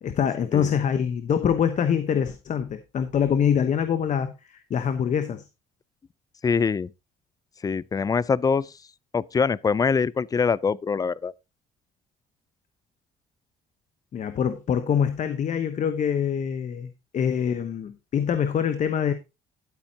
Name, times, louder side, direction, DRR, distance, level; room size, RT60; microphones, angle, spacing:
voice 1, 0.0-5.4 14.1-19.1, left 8 dB, 45° left, 1.0 m, -25 dB
voice 2, 6.4-6.9 7.6-8.7 9.1-11.3, left 5 dB, 20° left, 0.4 m, -24 dB
12.0 x 8.7 x 2.8 m
cardioid pair, 110°, 17 cm